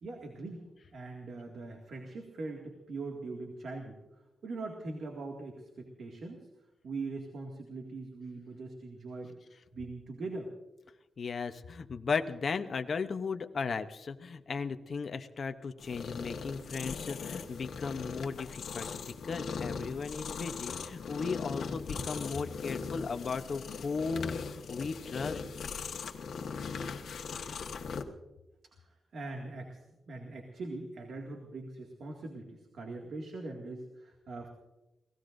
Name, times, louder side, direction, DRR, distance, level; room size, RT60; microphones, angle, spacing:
voice 1, 0.0-0.7 0.9-4.0 4.4-6.5 6.8-9.4 9.7-10.5 27.5-27.6 29.1-29.8 30.1-34.5, right 3 dB, 65° right, 2 dB, 2.1 m, -41 dB
voice 2, 11.2-25.4, left 5 dB, 45° left, 8 dB, 0.8 m, -36 dB
sound 1, 15.8-28.0, left 5 dB, 75° left, 1.3 m, -39 dB
29.5 x 18.0 x 2.6 m, 1.0 s
wide cardioid pair, 160°, 0 cm